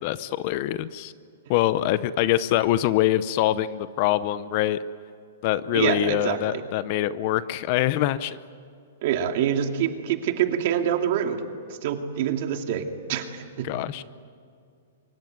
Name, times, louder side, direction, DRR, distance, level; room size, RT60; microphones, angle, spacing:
voice 1, 0.0-1.1 1.5-4.8 5.4-8.4 13.6-14.0, left 13 dB, 35° left, 15 dB, 0.7 m, -24 dB
voice 2, 5.7-6.6 9.0-11.4 11.8-13.7, right 9 dB, 45° right, 5 dB, 2.4 m, -26 dB
25.0 x 23.5 x 9.5 m, 2.3 s
hypercardioid pair, 165°, 0 cm